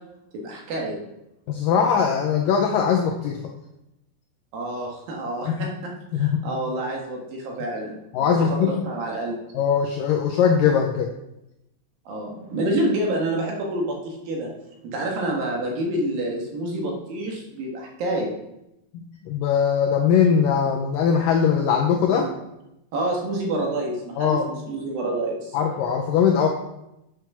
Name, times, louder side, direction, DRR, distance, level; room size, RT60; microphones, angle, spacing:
voice 1, 0.3-1.0 4.5-9.4 12.1-14.5 14.8-18.3 22.1-22.4 22.9-25.6, right 1 dB, 65° right, 0 dB, 3.1 m, -28 dB
voice 2, 1.5-3.4 5.5-5.6 6.1-6.5 8.1-8.7 9.5-11.1 19.3-22.3 24.2-24.5 25.5-26.5, left 7 dB, 85° left, 2 dB, 2.0 m, -20 dB
8.1 x 6.4 x 6.0 m, 0.87 s
omnidirectional pair, 4.8 m